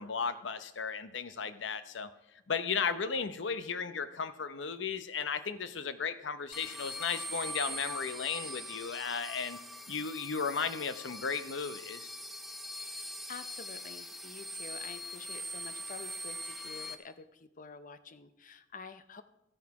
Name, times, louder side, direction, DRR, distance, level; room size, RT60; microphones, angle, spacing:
voice 1, 0.0-2.1 2.5-9.6 9.9-12.1, left 5 dB, 85° left, 12 dB, 0.7 m, -35 dB
sound 1, 6.5-16.9, equal, ahead, 0.7 m, -42 dB
voice 2, 12.8-19.2, left 5 dB, 45° left, 12 dB, 0.6 m, -49 dB
14.0 x 9.6 x 4.7 m, 0.94 s
head